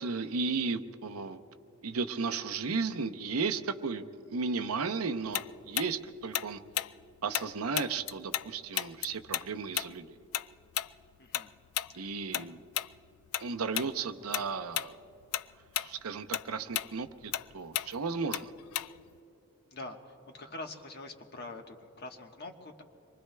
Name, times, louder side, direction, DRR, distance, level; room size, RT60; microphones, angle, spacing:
voice 1, 0.0-1.4 1.8-6.6 7.2-10.1 12.0-12.6 13.4-14.9 15.8-18.5, right 4 dB, 85° right, 8 dB, 0.7 m, -34 dB
Tick-tock, 5.3-8.5 8.8-13.5 13.7-14.0 14.3-14.9 15.2-19.2, left 13 dB, 80° left, 0.3 m, -34 dB
voice 2, 11.2-11.5 11.9-12.5 19.7-20.0 20.3-22.8, left 2 dB, 50° left, 3 dB, 1.2 m, -45 dB
26.5 x 23.5 x 2.2 m, 2.9 s
head